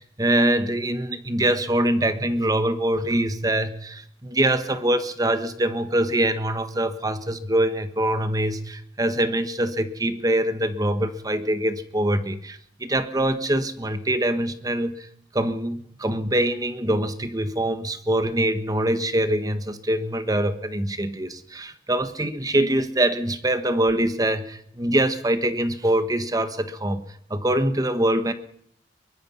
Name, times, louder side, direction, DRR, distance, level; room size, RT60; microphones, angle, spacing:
voice 1, 0.0-15.1 15.3-28.3, right 1 dB, 20° right, 10 dB, 1.4 m, -24 dB
23.5 x 21.0 x 5.7 m, 0.68 s
head